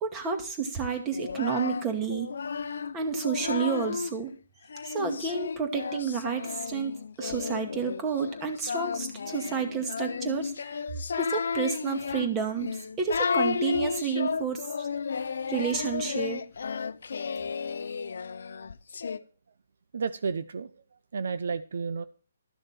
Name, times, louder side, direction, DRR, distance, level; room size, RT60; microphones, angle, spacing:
voice 1, 0.0-2.3 2.9-4.3 4.8-10.7 11.1-14.9 15.5-16.4, right 6 dB, 20° right, 5 dB, 2.2 m, -30 dB
Singing, 1.1-4.1 4.7-19.2, left 5 dB, 70° left, 0.7 m, -33 dB
voice 2, 19.9-22.0, right 5 dB, 65° right, 13 dB, 0.6 m, -32 dB
13.5 x 6.5 x 4.4 m, 0.39 s
hypercardioid pair, 145°, 0 cm